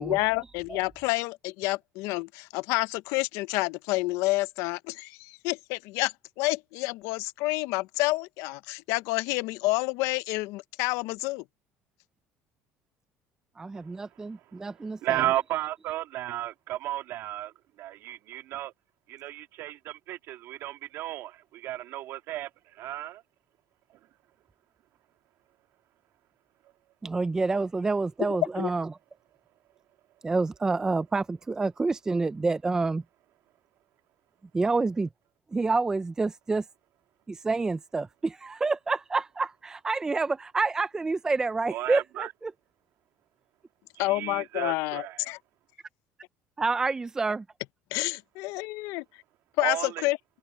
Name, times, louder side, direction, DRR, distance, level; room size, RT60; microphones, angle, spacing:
voice 1, 0.0-11.4 28.6-28.7 44.0-45.4 47.9-49.0 49.6-50.2, left 21 dB, 75° left, 0.6 m, -29 dB
voice 2, 13.6-15.2 27.0-28.9 30.2-33.0 34.5-35.1 35.5-36.6 37.3-42.5 46.6-47.4, right 3 dB, 10° right, 0.4 m, -28 dB
voice 3, 15.0-17.5 17.8-18.7 19.1-23.2 41.7-42.3 43.9-45.3 49.6-50.1, right 14 dB, 60° right, 1.8 m, -34 dB
cardioid pair, 155°, 5 cm